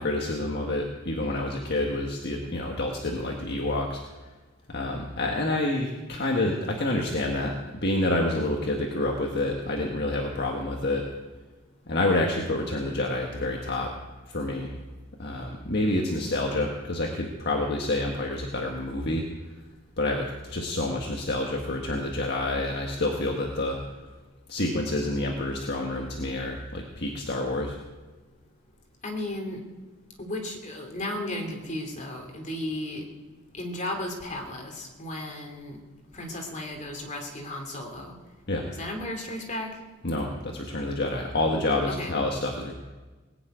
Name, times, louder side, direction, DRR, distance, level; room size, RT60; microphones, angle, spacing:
voice 1, 0.0-4.0 4.7-7.5 7.8-11.0 11.9-13.9 14.3-14.7 15.2-19.2 20.0-23.8 24.5-27.8 38.5-38.7 40.0-42.8, left 2 dB, 50° left, 1 dB, 1.6 m, -28 dB
voice 2, 29.0-29.6 30.2-33.1 33.5-35.8 36.1-38.1 38.7-39.7 41.9-42.1, left 1 dB, 35° left, 2 dB, 2.9 m, -34 dB
19.5 x 7.4 x 9.2 m, 1.3 s
head